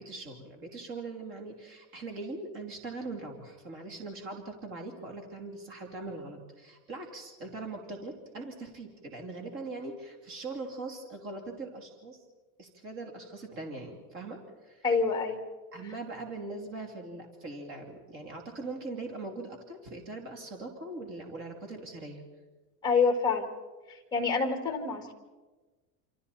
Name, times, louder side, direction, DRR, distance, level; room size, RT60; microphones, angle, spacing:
voice 1, 0.0-12.2 12.6-14.8 15.7-22.2, right 3 dB, 30° right, 2 dB, 3.0 m, -41 dB
voice 2, 14.8-15.4 22.8-23.5 23.9-25.1, left 5 dB, 10° left, 4 dB, 2.4 m, -27 dB
28.5 x 27.0 x 4.3 m, 1.3 s
supercardioid pair, 170°, 42 cm